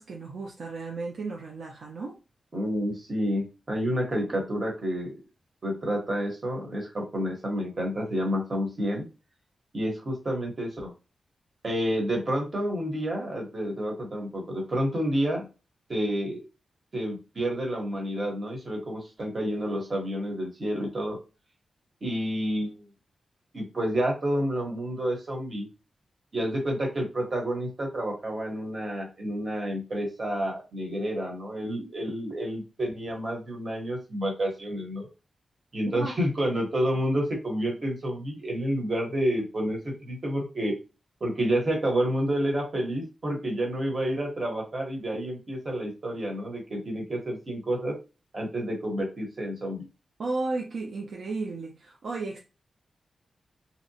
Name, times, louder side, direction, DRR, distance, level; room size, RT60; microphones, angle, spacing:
voice 1, 0.0-2.2 35.9-36.2 50.2-52.4, right 3 dB, 75° right, 0.4 m, -34 dB
voice 2, 2.5-5.1 5.6-9.1 9.7-10.9 11.6-15.5 15.9-16.4 16.9-21.2 22.0-22.8 23.5-25.7 26.3-35.1 35.7-40.7 41.2-48.0 48.3-49.9, equal, 45° right, 1.1 m, -29 dB
2.7 x 2.1 x 2.7 m
wide cardioid pair, 90°, 0 cm